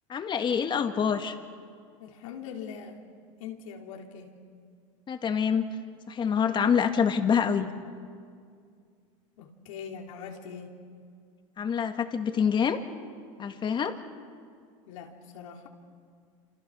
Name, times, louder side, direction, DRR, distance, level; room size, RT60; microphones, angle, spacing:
voice 1, 0.1-1.4 5.1-5.7 6.1-7.7 11.6-12.8 13.4-14.0, left 7 dB, 30° left, 7 dB, 1.9 m, -26 dB
voice 2, 2.0-3.0 3.4-4.3 9.4-10.7 14.9-15.7, left 7 dB, 80° left, 2 dB, 3.4 m, -42 dB
28.5 x 27.5 x 6.3 m, 2.2 s
supercardioid pair, 115°, 17 cm